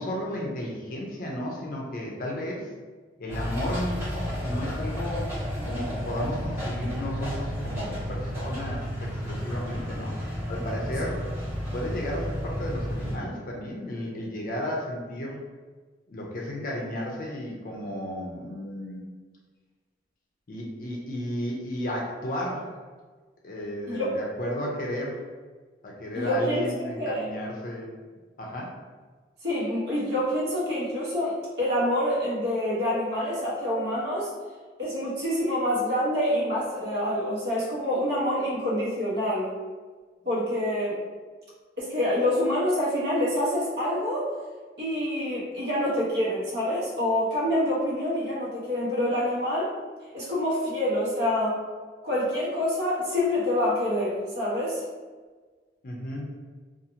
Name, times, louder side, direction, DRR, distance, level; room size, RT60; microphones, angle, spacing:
voice 1, 0.0-2.7 3.2-5.3 5.6-11.3 11.7-15.4 16.1-19.0 20.5-22.8 23.4-25.2 25.8-27.9 28.4-28.7 55.8-56.4, left 1 dB, 50° left, -2 dB, 0.5 m, -33 dB
ouwe grasmaaier handmatig, 3.3-13.2, equal, 15° right, 1.2 m, -32 dB
voice 2, 26.1-26.6 27.0-27.3 29.4-34.3 34.8-39.5 40.2-41.0 41.8-44.3 44.8-49.7 50.1-51.6 52.0-54.8, left 1 dB, 65° right, -7 dB, 1.0 m, -26 dB
2.6 x 2.4 x 2.7 m, 1.4 s
head